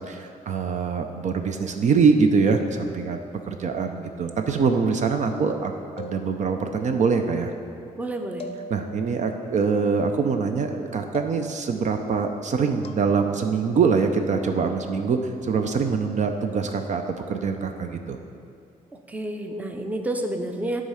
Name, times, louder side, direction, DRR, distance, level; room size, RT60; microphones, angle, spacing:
voice 1, 0.1-3.2 3.5-7.5 8.7-17.0 17.3-18.2, right 5 dB, 55° right, 6 dB, 0.5 m, -24 dB
sound 1, 6.0-6.8 8.4-9.3 11.1-11.8 12.8-13.1, left 2 dB, 40° left, 0.6 m, -41 dB
voice 2, 8.0-8.5 19.1-20.8, right 1 dB, 10° right, 4 dB, 0.6 m, -29 dB
9.2 x 3.7 x 5.6 m, 2.5 s
cardioid pair, 95°, 15 cm